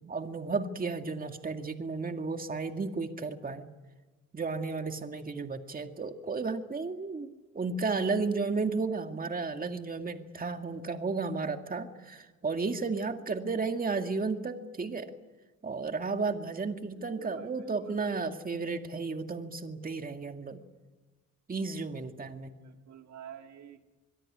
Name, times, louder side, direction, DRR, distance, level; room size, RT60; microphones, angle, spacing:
voice 1, 0.0-3.7 4.3-15.1 15.6-20.6 21.5-22.5, right 4 dB, 30° right, 6 dB, 2.1 m, -33 dB
voice 2, 17.0-18.0 22.6-23.8, right 9 dB, 65° right, 6 dB, 2.1 m, -49 dB
25.5 x 22.5 x 9.9 m, 1.2 s
cardioid pair, 90°, 30 cm